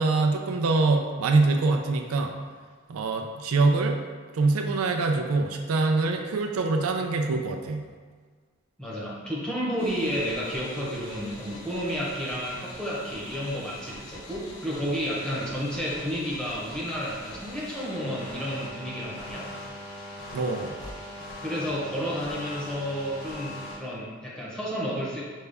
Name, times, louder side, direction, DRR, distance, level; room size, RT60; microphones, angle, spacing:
voice 1, 0.0-2.3 2.9-4.0 4.3-7.8 20.3-20.7, right 3 dB, 90° right, 4 dB, 0.4 m, -24 dB
voice 2, 8.8-19.5 21.4-25.2, equal, 5° left, -7 dB, 0.8 m, -31 dB
sound 1, 9.8-23.8, left 1 dB, 85° left, 0.8 m, -42 dB
5.3 x 2.3 x 3.4 m, 1.5 s
head